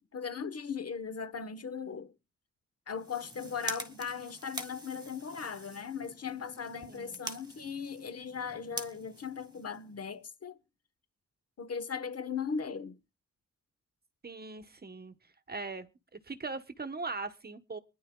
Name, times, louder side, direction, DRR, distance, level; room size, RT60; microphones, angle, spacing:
voice 1, 0.1-2.1 2.9-10.6 11.6-13.0, left 6 dB, 55° left, 1.1 m, -38 dB
sound 1, 2.9-10.2, right 2 dB, 15° right, 1.8 m, -45 dB
voice 2, 6.9-7.2 14.2-15.1 15.5-17.8, right 3 dB, 30° right, 1.0 m, -40 dB
23.5 x 10.5 x 2.3 m
wide cardioid pair, 100°, 30 cm